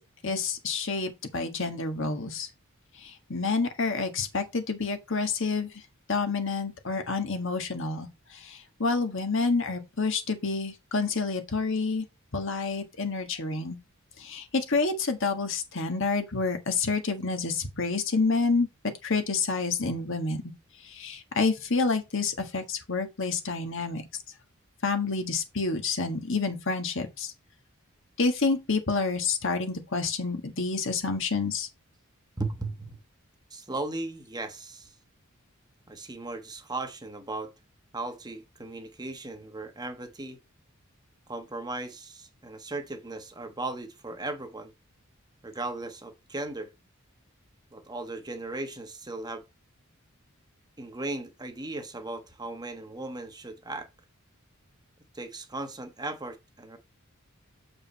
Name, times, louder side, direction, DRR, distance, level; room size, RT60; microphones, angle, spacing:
voice 1, 0.2-2.5 3.0-5.7 6.1-12.0 12.3-13.8 14.2-18.7 19.0-20.5 20.8-24.0 24.8-27.3 28.2-31.7, left 4 dB, 65° left, 1.6 m, -28 dB
voice 2, 32.4-33.0 33.5-34.9 35.9-37.5 37.9-40.4 41.3-44.7 45.4-46.7 47.7-49.4 50.8-53.9 55.1-56.8, right 2 dB, 20° right, 1.1 m, -37 dB
7.4 x 5.3 x 4.2 m
head